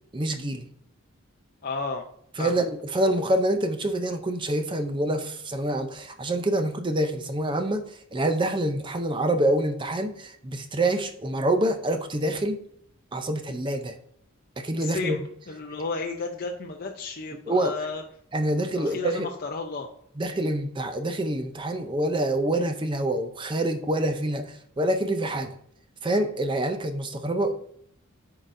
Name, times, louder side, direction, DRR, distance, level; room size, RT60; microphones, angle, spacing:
voice 1, 0.1-0.7 2.4-12.6 13.1-14.0 14.6-15.2 17.5-17.7 18.3-19.3 20.2-25.5 26.0-27.5, right 1 dB, 20° right, 7 dB, 0.5 m, -26 dB
voice 2, 1.6-2.0 2.4-2.7 14.8-18.0 18.7-19.9, left 4 dB, 45° left, 2 dB, 0.5 m, -33 dB
10.0 x 3.8 x 2.6 m, 0.70 s
head